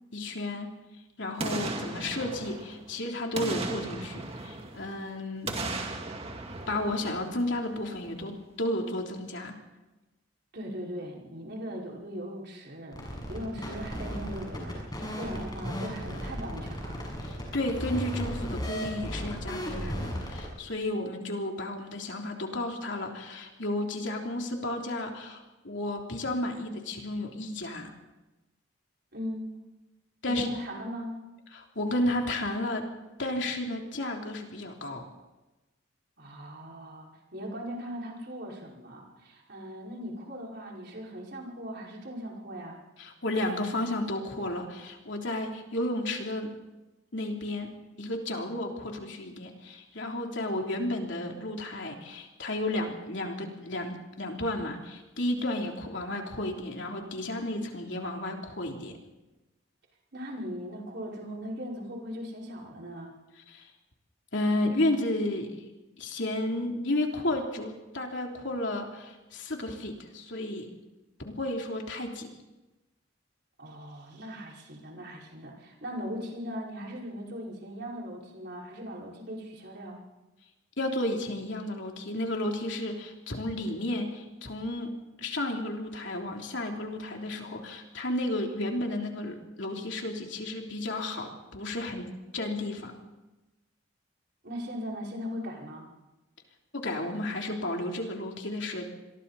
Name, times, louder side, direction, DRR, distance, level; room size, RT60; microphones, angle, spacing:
voice 1, 0.1-0.7 1.2-5.5 6.7-9.6 17.2-27.9 30.2-30.5 31.5-32.9 33.2-35.1 43.0-46.5 47.1-47.7 48.0-59.0 63.5-63.7 64.3-65.6 66.0-70.7 71.2-72.3 80.8-92.9 96.7-98.9, left 1 dB, 60° left, 1 dB, 3.4 m, -32 dB
Boom, 1.4-2.9 3.3-5.0 5.4-7.7 8.1-8.2, right 2 dB, 30° right, 2.4 m, -36 dB
voice 2, 10.5-17.0 29.1-29.5 30.3-31.2 36.2-42.8 60.1-63.1 73.6-80.0 94.4-95.9, equal, 55° right, -2 dB, 5.3 m, -39 dB
sound 1, 12.9-20.5, equal, 20° left, 6.9 m, -35 dB
28.0 x 23.0 x 4.2 m, 1.1 s
head